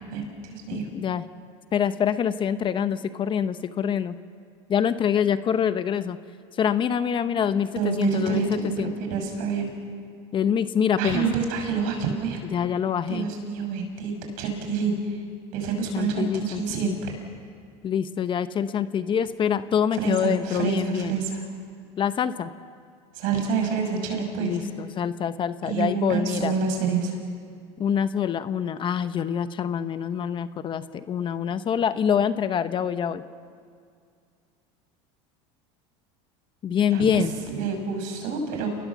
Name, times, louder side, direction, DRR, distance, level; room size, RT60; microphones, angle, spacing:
voice 1, 0.1-0.9 7.8-9.7 11.0-12.4 13.1-14.1 14.4-15.2 15.5-17.1 19.9-21.4 23.1-24.6 25.6-27.1 36.9-37.2 37.5-38.7, right 5 dB, 65° right, 4 dB, 6.3 m, -27 dB
voice 2, 0.7-1.3 1.7-4.1 4.7-6.2 6.6-8.9 10.3-11.3 12.5-13.3 15.9-17.0 17.8-21.2 22.0-22.5 24.4-26.5 27.8-33.2 36.6-37.3, left 8 dB, 35° left, 12 dB, 0.9 m, -25 dB
29.5 x 19.5 x 7.3 m, 2.2 s
supercardioid pair, 120°, 15 cm